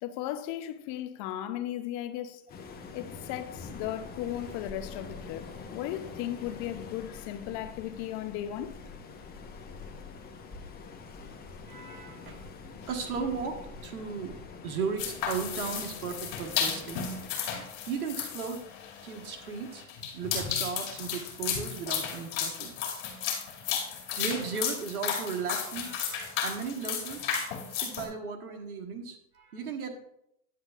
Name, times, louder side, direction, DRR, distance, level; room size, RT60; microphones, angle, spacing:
voice 1, 0.0-2.4 2.9-8.8, left 12 dB, 40° left, 0.7 m, -36 dB
Waves surf, 2.5-17.3, left 4 dB, 20° left, 1.1 m, -45 dB
voice 2, 11.6-12.5 12.9-17.1 17.5-18.6 19.0-19.9 20.1-22.7 24.2-27.3 27.7-30.0, right 5 dB, 90° right, 1.5 m, -36 dB
sound 1, 15.0-28.0, left 7 dB, 60° left, 2.4 m, -34 dB
10.0 x 7.9 x 2.4 m
hypercardioid pair, 120°, 43 cm